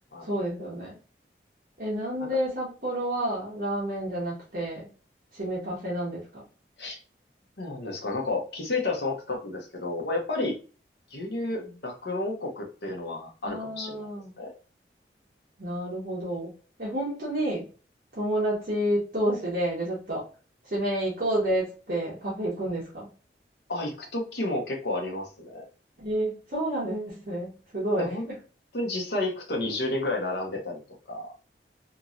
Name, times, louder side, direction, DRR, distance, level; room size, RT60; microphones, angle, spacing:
voice 1, 0.2-1.0 1.8-4.9 5.3-6.4 11.2-11.7 13.4-14.4 15.6-16.5 16.8-17.7 18.2-20.2 20.6-23.1 26.0-28.1, right 1 dB, 50° right, -5 dB, 1.0 m, -30 dB
voice 2, 7.6-10.5 11.1-14.1 14.4-14.5 23.7-25.6 28.0-28.2 28.7-30.8 31.1-31.3, left 2 dB, 70° left, 1 dB, 0.9 m, -31 dB
2.9 x 2.7 x 2.4 m, 0.36 s
head